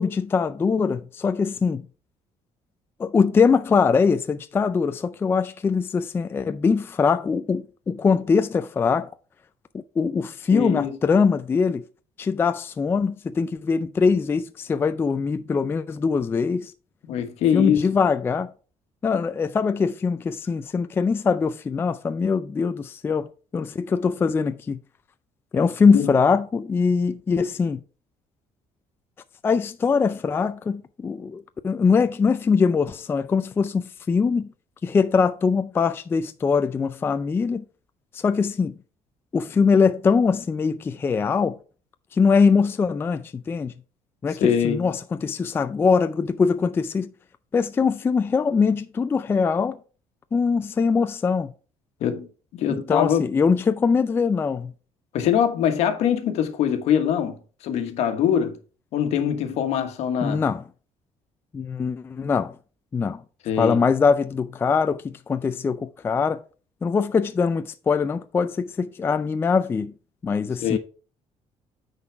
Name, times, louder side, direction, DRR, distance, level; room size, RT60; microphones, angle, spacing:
voice 1, 0.0-1.8 3.0-9.1 10.0-11.8 12.2-16.7 17.5-18.5 19.0-23.3 23.5-24.8 25.5-27.8 29.4-34.5 34.8-37.6 38.1-38.7 39.3-41.6 42.1-43.7 44.2-47.1 47.5-49.8 50.3-51.5 52.7-54.7 60.2-60.6 61.5-62.6 62.9-63.2 63.6-66.4 66.8-69.9 70.2-70.8, left 5 dB, 20° left, 0.3 m, -22 dB
voice 2, 10.5-11.0 17.1-17.9 25.9-26.1 44.4-44.9 52.0-52.3 52.5-53.2 55.1-57.4 57.6-58.6 58.9-60.5 63.4-63.8 70.6-70.8, left 9 dB, 70° left, 1.3 m, -23 dB
9.5 x 4.0 x 4.5 m
cardioid pair, 145°, 12 cm